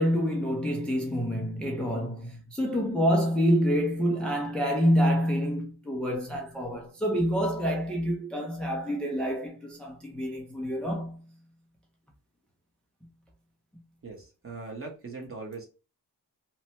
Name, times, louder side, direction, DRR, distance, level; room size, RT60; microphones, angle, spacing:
voice 1, 0.0-11.2, equal, 5° left, 0.4 m, -27 dB
voice 2, 14.0-15.7, right 3 dB, 35° right, 1.0 m, -40 dB
2.9 x 2.1 x 2.9 m
cardioid pair, 100°, 39 cm